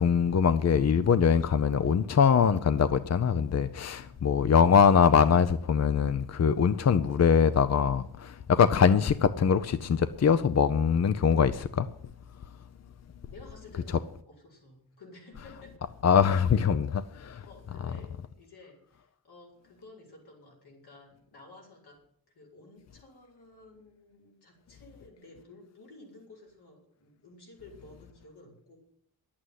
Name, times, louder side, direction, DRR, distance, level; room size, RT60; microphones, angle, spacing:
voice 1, 0.0-11.9 12.4-12.5 13.9-14.0 16.0-17.5 17.8-17.9, left 7 dB, 45° left, 0.6 m, -23 dB
voice 2, 0.9-1.5 4.0-4.2 13.3-15.9 17.5-22.0 22.3-28.8, left 2 dB, 85° left, 5.4 m, -53 dB
11.5 x 8.7 x 9.3 m
wide cardioid pair, 125°, 38 cm